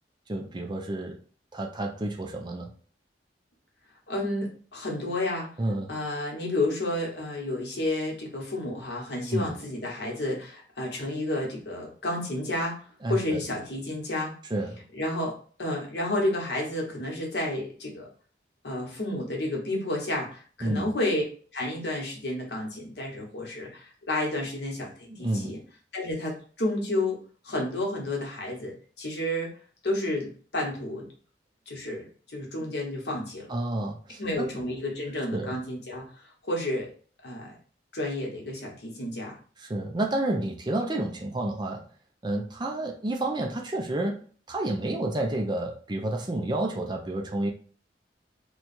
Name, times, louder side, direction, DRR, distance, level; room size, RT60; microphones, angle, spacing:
voice 1, 0.3-1.2 1.5-2.7 5.6-5.9 9.3-9.5 13.0-13.4 14.5-14.8 20.6-20.9 25.1-25.5 33.5-34.5 35.3-35.5 39.6-41.8 42.2-44.2 44.5-47.5, right 1 dB, 25° right, 1 dB, 0.5 m, -30 dB
voice 2, 4.1-5.5 5.9-14.3 14.9-18.1 18.6-21.2 21.5-25.6 25.9-27.2 27.4-29.5 29.8-31.1 31.7-33.5 34.2-36.9 37.2-37.6 37.9-39.4, left 1 dB, 65° left, -1 dB, 1.1 m, -31 dB
3.0 x 2.3 x 4.1 m, 0.43 s
head